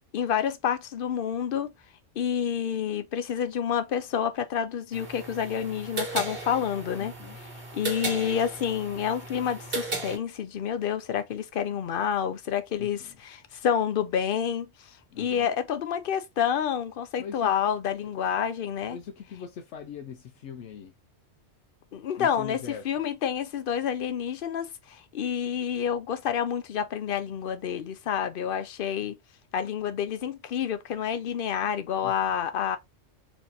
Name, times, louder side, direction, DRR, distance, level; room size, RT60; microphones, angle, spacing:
voice 1, 0.1-1.7 2.2-7.1 7.7-14.7 15.2-19.0 21.9-24.7 25.1-29.2 29.5-32.8, left 8 dB, 60° left, 0.7 m, -28 dB
sound 1, 4.9-10.2, right 3 dB, 55° right, 1.6 m, -35 dB
voice 2, 7.0-7.4 12.8-13.2 15.1-15.5 17.2-17.5 18.0-18.1 18.9-20.9 22.2-22.9 32.0-32.4, left 7 dB, 90° left, 0.9 m, -41 dB
4.3 x 2.9 x 2.6 m
omnidirectional pair, 1.2 m